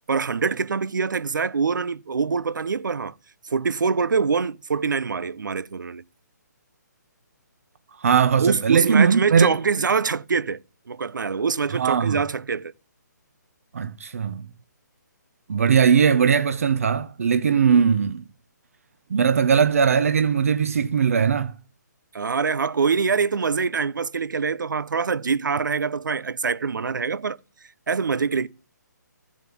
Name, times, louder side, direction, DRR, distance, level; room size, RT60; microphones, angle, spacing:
voice 1, 0.1-3.1 3.5-6.0 8.4-10.6 10.9-12.7 22.1-27.4 27.9-28.5, right 5 dB, 85° right, 0.8 m, -24 dB
voice 2, 8.0-9.5 11.7-12.2 13.7-14.5 15.5-18.2 19.1-21.5, right 6 dB, 50° right, 0.8 m, -19 dB
14.0 x 7.5 x 8.5 m
hypercardioid pair, 175°, 10 cm